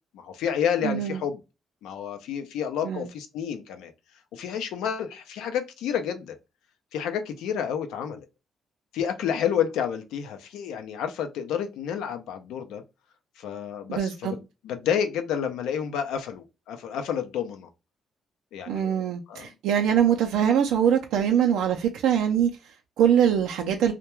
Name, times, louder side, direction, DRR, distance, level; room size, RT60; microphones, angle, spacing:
voice 1, 0.1-1.4 1.8-3.9 4.3-6.4 6.9-8.3 8.9-12.8 13.4-17.7 18.5-19.0 19.3-19.5, left 8 dB, 90° left, 0.5 m, -30 dB
voice 2, 0.8-1.2 2.8-3.1 13.9-14.3 18.7-23.9, right 9 dB, 90° right, 0.4 m, -23 dB
2.3 x 2.1 x 2.9 m
cardioid pair, 90°, 0 cm